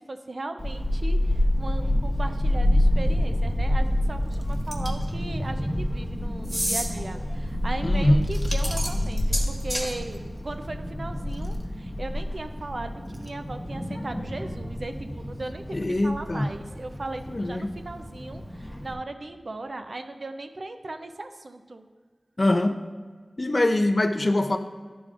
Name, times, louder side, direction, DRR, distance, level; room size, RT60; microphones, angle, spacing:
voice 1, 0.0-21.8, right 2 dB, 65° right, 7 dB, 0.5 m, -37 dB
Child speech kid speaking / Wind, 0.6-18.9, left 1 dB, 10° left, 0.8 m, -28 dB
sound 1, 4.7-5.1 6.4-6.9 8.3-9.9, equal, 20° right, 1.5 m, -29 dB
voice 2, 7.8-8.2 15.7-16.5 17.3-17.7 22.4-22.8 23.4-24.6, left 1 dB, 45° left, 7 dB, 0.5 m, -23 dB
11.5 x 5.0 x 2.5 m, 1.5 s
cardioid pair, 40°, 0 cm